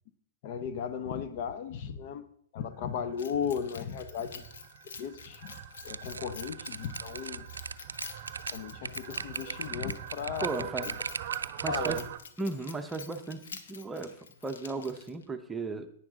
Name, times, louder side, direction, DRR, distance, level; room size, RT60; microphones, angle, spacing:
voice 1, 0.4-2.2 2.5-4.4 5.0-5.5 5.8-7.5 8.5-10.9 11.7-12.1, left 7 dB, 50° left, 10 dB, 1.0 m, -36 dB
Fowl, 2.8-12.2, right 12 dB, 50° right, 0.8 m, -43 dB
Keys jangling, 3.2-15.3, left 6 dB, 70° left, 1.2 m, -48 dB
sound 1, 5.9-12.1, right 4 dB, 85° right, 0.4 m, -38 dB
voice 2, 10.4-10.9 11.6-12.0 12.4-15.9, right 3 dB, 10° right, 7 dB, 0.9 m, -35 dB
10.5 x 9.6 x 3.9 m, 0.63 s
hypercardioid pair, 115°, 0 cm